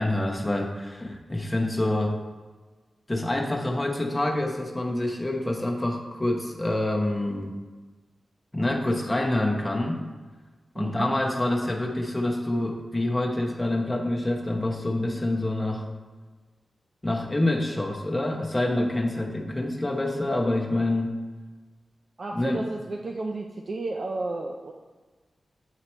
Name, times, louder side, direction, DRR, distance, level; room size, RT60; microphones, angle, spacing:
voice 1, 0.0-2.2 3.1-7.5 8.5-10.0 10.7-15.9 17.0-21.1 22.3-22.6, left 1 dB, 15° left, 0 dB, 0.9 m, -26 dB
voice 2, 10.8-11.1 22.2-24.7, right 2 dB, 55° right, 1 dB, 0.4 m, -32 dB
8.2 x 2.9 x 4.3 m, 1.3 s
cardioid pair, 75°, 0 cm